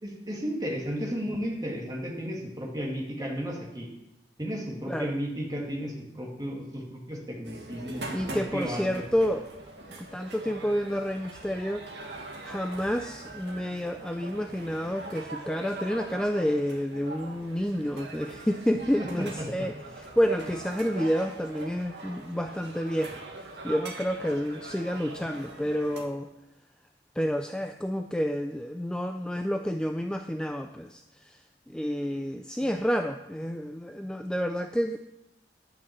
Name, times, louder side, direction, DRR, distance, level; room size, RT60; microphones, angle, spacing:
voice 1, 0.0-3.9 4.4-9.0 19.0-19.7 32.0-32.2 32.6-32.7, equal, 20° right, -1 dB, 2.3 m, -34 dB
sound 1, 7.4-26.0, right 2 dB, 75° right, 1.6 m, -42 dB
voice 2, 8.1-9.5 10.1-11.8 12.4-23.2 23.6-26.3 27.2-31.3 31.7-35.0, equal, 5° left, 6 dB, 0.3 m, -29 dB
11.0 x 6.0 x 7.3 m, 0.91 s
head